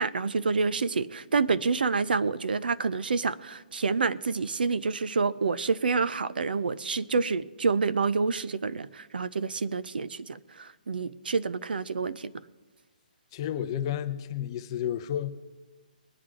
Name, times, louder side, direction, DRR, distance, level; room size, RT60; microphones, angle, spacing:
voice 1, 0.0-12.3, right 4 dB, 80° right, 0.6 m, -28 dB
voice 2, 13.3-15.3, left 10 dB, 30° left, 0.6 m, -31 dB
21.0 x 8.8 x 3.7 m
hypercardioid pair, 160°, 5 cm